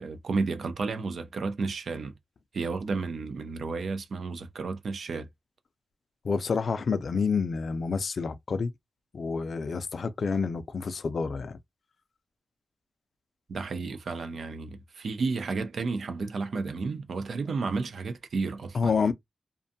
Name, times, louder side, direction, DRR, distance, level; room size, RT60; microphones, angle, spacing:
voice 1, 0.0-2.1 2.5-5.3 13.5-19.1, right 4 dB, 70° right, 0.4 m, -32 dB
voice 2, 6.2-8.7 9.1-11.6 18.7-19.1, left 5 dB, 60° left, 0.3 m, -28 dB
2.5 x 2.2 x 2.6 m
wide cardioid pair, 120°, 0 cm